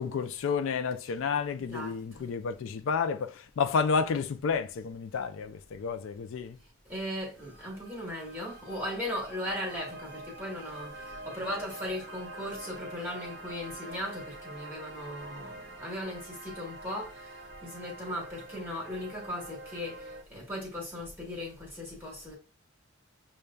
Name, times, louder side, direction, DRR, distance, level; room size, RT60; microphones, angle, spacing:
voice 1, 0.0-6.6, left 5 dB, 65° left, 0.3 m, -30 dB
voice 2, 1.6-2.3 6.9-10.9 11.2-17.1 17.6-20.0 20.3-22.3, left 1 dB, 10° right, 1.1 m, -37 dB
sound 1, 7.4-20.2, right 1 dB, 55° right, 0.7 m, -45 dB
6.4 x 2.2 x 2.2 m
head